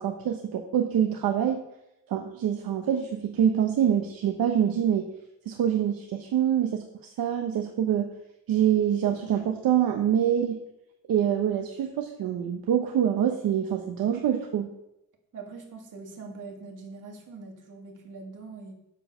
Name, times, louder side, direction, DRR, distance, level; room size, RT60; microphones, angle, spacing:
voice 1, 0.0-1.6 2.1-5.1 5.5-8.1 8.5-10.6 11.1-14.7, right 9 dB, 75° right, 4 dB, 0.9 m, -25 dB
voice 2, 15.3-18.7, right 4 dB, 55° right, 2 dB, 2.1 m, -43 dB
7.4 x 7.1 x 5.5 m, 0.86 s
wide cardioid pair, 165°, 36 cm